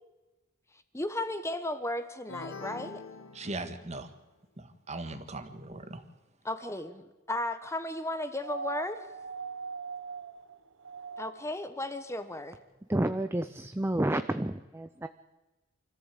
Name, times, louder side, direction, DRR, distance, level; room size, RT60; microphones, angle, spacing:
voice 1, 0.9-3.0 6.4-9.0 11.2-12.6, left 1 dB, 15° left, 1.2 m, -35 dB
sound 1, 2.3-4.1, left 4 dB, 70° left, 1.4 m, -44 dB
voice 2, 3.3-4.1 4.6-6.0, right 2 dB, 35° right, 1.6 m, -39 dB
sound 2, 8.4-11.6 13.0-13.1, right 5 dB, 65° right, 1.2 m, -41 dB
voice 3, 12.9-15.1, right 1 dB, 10° right, 0.6 m, -30 dB
25.5 x 14.5 x 8.4 m
head